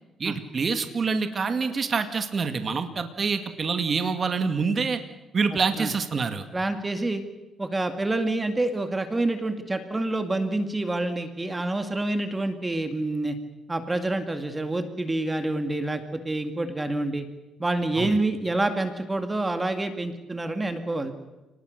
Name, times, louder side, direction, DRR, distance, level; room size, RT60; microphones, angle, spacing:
voice 1, 0.2-5.0 5.3-6.4 18.0-18.2, right 5 dB, 40° right, 7 dB, 2.2 m, -26 dB
voice 2, 5.5-5.9 6.5-7.2 7.6-13.4 13.7-17.3 17.6-21.1, right 2 dB, 20° right, 7 dB, 2.2 m, -27 dB
29.5 x 19.5 x 6.6 m, 1.1 s
cardioid pair, 90°, 0 cm